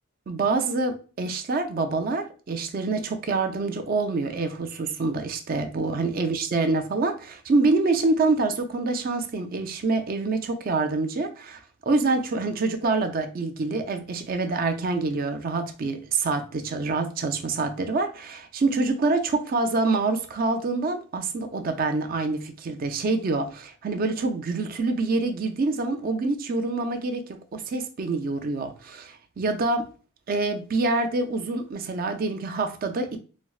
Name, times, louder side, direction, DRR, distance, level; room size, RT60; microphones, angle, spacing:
voice 1, 0.3-27.2 27.5-29.9 30.3-33.2, right 3 dB, 45° right, 0.4 m, -26 dB
4.2 x 2.0 x 2.3 m
head